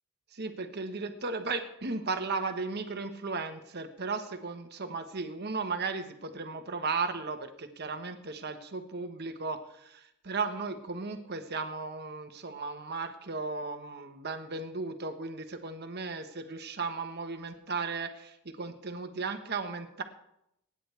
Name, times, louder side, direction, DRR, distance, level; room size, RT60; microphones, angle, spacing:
voice 1, 0.3-20.0, right 4 dB, 50° right, 7 dB, 1.3 m, -35 dB
24.5 x 10.0 x 3.4 m, 0.80 s
head